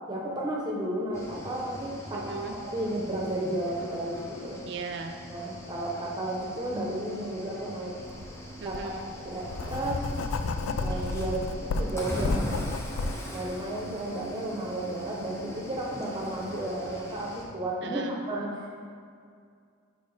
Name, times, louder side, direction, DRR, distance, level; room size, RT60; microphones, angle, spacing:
voice 1, 0.1-4.6 5.3-8.3 8.6-10.1 10.8-12.5 13.3-18.7, right 1 dB, 20° right, -3 dB, 0.8 m, -33 dB
Cricket / Waves surf, 1.1-17.5, equal, 15° left, 0.6 m, -41 dB
voice 2, 2.1-2.5 4.7-5.1 8.6-9.1 17.8-18.1, right 4 dB, 55° right, 5 dB, 0.5 m, -37 dB
Writing, 8.1-8.2 8.7-13.1, left 3 dB, 75° left, 0.3 m, -31 dB
5.2 x 4.2 x 4.9 m, 2.2 s
head